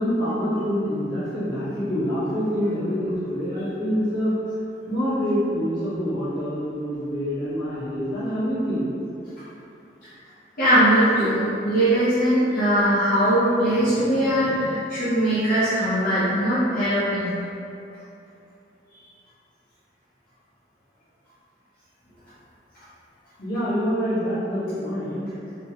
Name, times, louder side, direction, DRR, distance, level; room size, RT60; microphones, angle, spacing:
voice 1, 0.0-4.3 4.9-8.9 23.4-25.3, equal, 70° left, -12 dB, 1.2 m, -26 dB
voice 2, 10.6-17.3, right 1 dB, 50° left, -14 dB, 0.7 m, -20 dB
3.3 x 2.2 x 2.9 m, 2.7 s
head